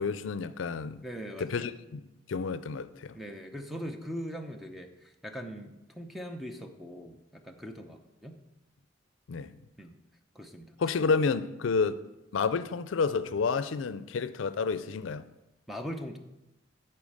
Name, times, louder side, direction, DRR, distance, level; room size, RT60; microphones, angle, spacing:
voice 1, 0.0-1.0 1.4-3.2 9.3-9.5 10.8-12.0 12.3-15.2, left 5 dB, 85° left, 0.4 m, -30 dB
voice 2, 1.0-1.7 3.1-8.4 9.8-9.9 10.3-10.7 15.7-16.2, equal, ahead, 0.7 m, -41 dB
10.5 x 4.5 x 6.5 m
head